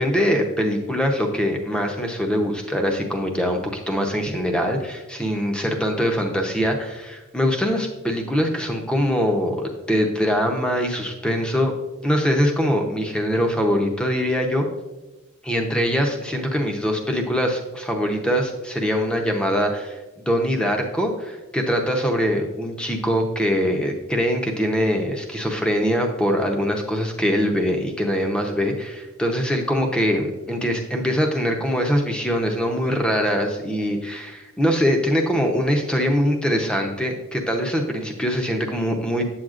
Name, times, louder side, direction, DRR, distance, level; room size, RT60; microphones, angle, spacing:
voice 1, 0.0-11.7 12.0-14.7 15.4-39.2, equal, 5° left, 3 dB, 0.7 m, -23 dB
8.0 x 7.7 x 2.5 m, 1.1 s
head